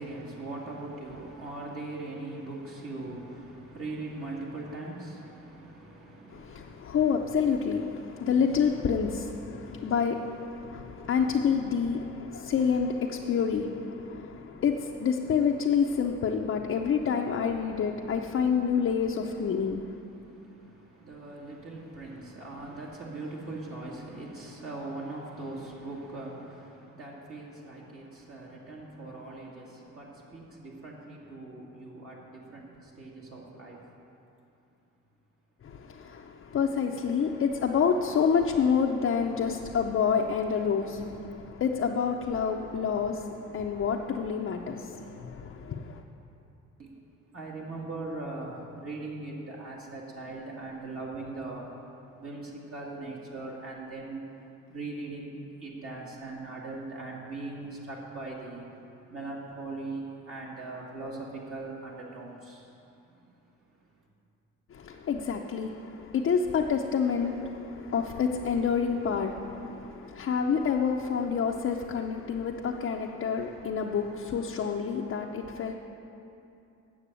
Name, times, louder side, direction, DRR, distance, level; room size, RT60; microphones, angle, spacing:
voice 1, 0.0-7.0 8.0-8.3 9.5-9.9 10.7-11.0 17.7-18.1 19.5-33.8 46.8-46.9 47.3-51.7 52.2-54.2 54.7-58.7 59.1-62.7 63.1-63.2, right 2 dB, 50° right, -4 dB, 2.0 m, -40 dB
voice 2, 6.3-19.9 35.6-46.0 64.7-75.7, left 6 dB, 45° left, 0 dB, 0.7 m, -28 dB
8.5 x 6.6 x 8.2 m, 2.8 s
cardioid pair, 90°, 30 cm